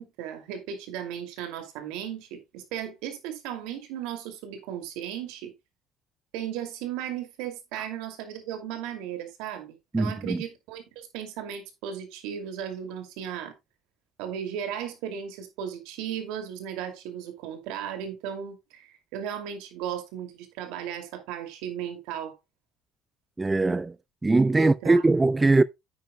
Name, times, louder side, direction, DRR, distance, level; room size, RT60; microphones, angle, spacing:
voice 1, 0.0-5.5 6.3-13.5 14.2-22.4 24.6-25.0, right 9 dB, 75° right, 2.4 m, -36 dB
voice 2, 9.9-10.4 23.4-24.0 24.2-25.6, right 3 dB, 15° right, 0.4 m, -21 dB
9.4 x 9.4 x 2.2 m
supercardioid pair, 95°, 0 cm